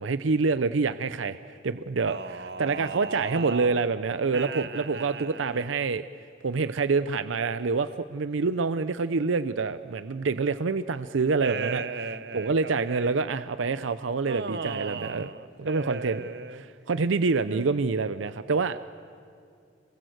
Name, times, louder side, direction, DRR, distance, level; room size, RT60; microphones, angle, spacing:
voice 1, 0.0-6.0 6.4-11.8 12.3-15.3 15.6-16.2 16.9-18.8, right 4 dB, 85° right, 12 dB, 0.6 m, -27 dB
voice 2, 2.0-3.8 4.3-5.7 11.4-13.2 14.3-16.6 17.5-17.9, right 4 dB, 60° right, 11 dB, 0.9 m, -36 dB
27.0 x 22.0 x 8.0 m, 2.4 s
head